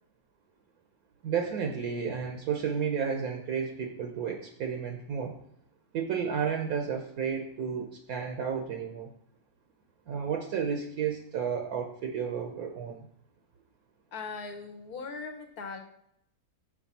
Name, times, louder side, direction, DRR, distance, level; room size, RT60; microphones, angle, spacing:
voice 1, 1.2-5.3 5.9-9.1 10.1-13.0, right 7 dB, 70° right, 4 dB, 1.1 m, -32 dB
voice 2, 14.1-15.8, left 4 dB, 70° left, 4 dB, 1.3 m, -39 dB
5.9 x 5.0 x 4.1 m, 0.73 s
omnidirectional pair, 1.7 m